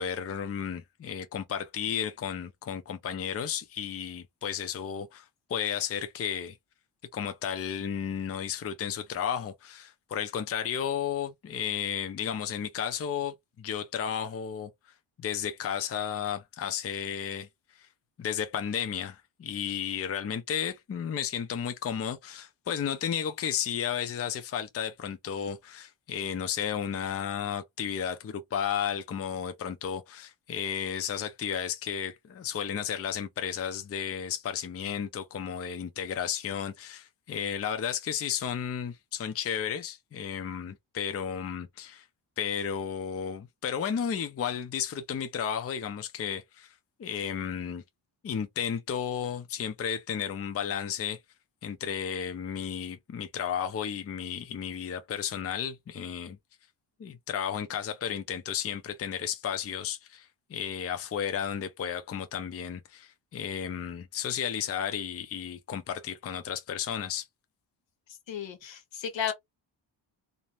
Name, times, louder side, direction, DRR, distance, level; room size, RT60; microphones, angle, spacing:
voice 1, 0.0-6.6 7.1-14.7 15.2-17.5 17.8-17.9 18.2-42.1 42.4-46.7 47.0-47.8 48.2-51.2 51.6-56.4 57.0-67.3, left 8 dB, 30° left, 0.5 m, -33 dB
voice 2, 68.3-69.3, left 8 dB, 65° left, 1.0 m, -33 dB
2.5 x 2.0 x 3.0 m
cardioid pair, 65°, 48 cm